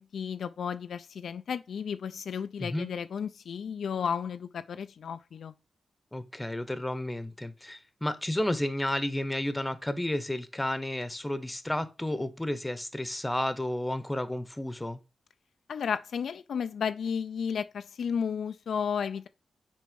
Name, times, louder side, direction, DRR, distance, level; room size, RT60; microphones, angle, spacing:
voice 1, 0.0-5.5 15.7-19.3, left 7 dB, 75° left, 0.4 m, -33 dB
voice 2, 6.1-15.0, left 1 dB, 15° left, 0.9 m, -32 dB
6.2 x 4.4 x 5.2 m
cardioid pair, 70°, 0 cm